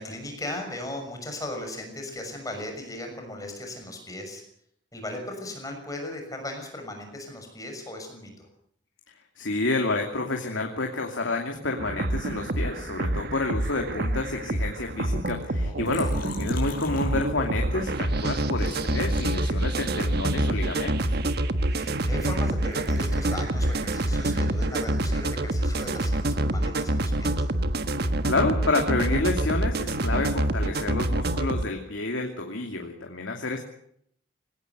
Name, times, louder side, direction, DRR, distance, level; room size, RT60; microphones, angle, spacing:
voice 1, 0.0-4.4 4.9-8.5 15.6-16.1 21.7-27.5, left 1 dB, 20° left, 3 dB, 6.3 m, -37 dB
voice 2, 9.4-21.2 28.2-33.6, left 2 dB, 90° left, 2 dB, 2.7 m, -29 dB
sound 1, 11.8-31.6, right 1 dB, 55° right, 1.4 m, -26 dB
Liquid, 15.8-17.8 18.6-20.1 20.7-22.4 22.7-26.4 26.7-28.3, left 3 dB, 45° left, 6.5 m, -44 dB
20.5 x 18.0 x 8.1 m, 0.69 s
head